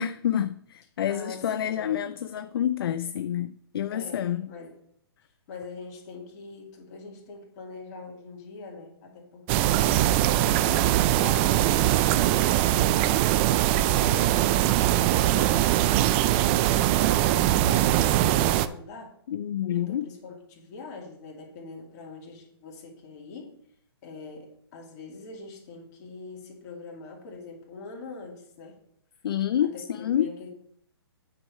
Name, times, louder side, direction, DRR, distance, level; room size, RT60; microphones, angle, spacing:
voice 1, 0.0-4.5 19.3-20.1 29.2-30.3, left 10 dB, 60° left, 0.4 m, -28 dB
voice 2, 1.1-2.0 3.9-4.7 5.5-9.8 10.3-13.2 13.6-14.8 15.2-19.1 19.7-23.6 24.0-28.8 29.7-29.8 30.2-30.5, left 4 dB, 40° left, 2.6 m, -43 dB
sound 1, 9.5-18.7, right 14 dB, 25° right, 0.4 m, -22 dB
8.8 x 4.8 x 5.5 m
hypercardioid pair, 140°, 14 cm